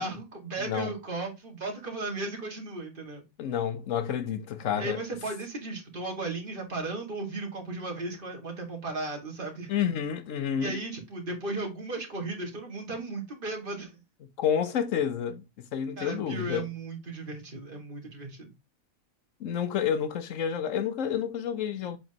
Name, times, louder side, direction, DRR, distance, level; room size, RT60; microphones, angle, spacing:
voice 1, 0.0-3.2 4.8-9.7 10.6-14.0 16.0-18.5, right 2 dB, 40° right, 2.1 m, -35 dB
voice 2, 0.6-0.9 3.4-5.0 9.7-10.8 14.4-16.7 19.4-22.0, left 8 dB, 70° left, 1.2 m, -29 dB
7.7 x 5.0 x 2.9 m
omnidirectional pair, 1.4 m